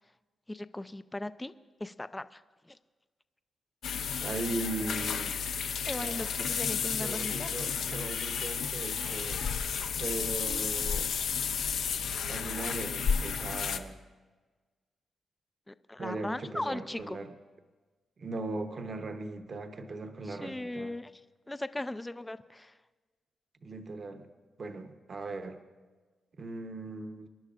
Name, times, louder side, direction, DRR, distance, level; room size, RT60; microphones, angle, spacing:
voice 1, 0.5-1.5 1.8-2.4 2.7-2.8 5.9-7.5 9.0-9.2 10.4-10.6 15.7-17.2 20.3-21.1 21.5-22.7, left 1 dB, 10° left, 13 dB, 0.3 m, -38 dB
sound 1, 3.8-13.8, left 6 dB, 70° left, 0.6 m, -32 dB
voice 2, 4.2-5.5 5.8-6.4 7.0-9.5 10.0-11.1 12.3-14.0 16.0-17.3 18.2-21.0 23.6-24.3 24.6-25.6 26.4-27.3, right 2 dB, 40° right, 6 dB, 0.9 m, -39 dB
25.0 x 11.0 x 2.5 m, 1.4 s
wide cardioid pair, 135°, 0 cm